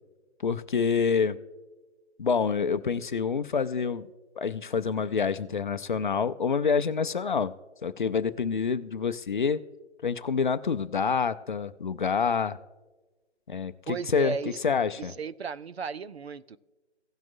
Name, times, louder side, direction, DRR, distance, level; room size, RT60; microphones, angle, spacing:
voice 1, 0.4-1.4 2.2-4.1 4.4-7.5 7.8-9.6 10.0-12.6 13.5-14.4 14.6-15.1, left 6 dB, 45° left, 0.5 m, -27 dB
voice 2, 13.9-14.6 15.0-16.6, right 6 dB, 65° right, 0.6 m, -34 dB
17.0 x 5.9 x 2.6 m
figure-of-eight pair, 140°, 34 cm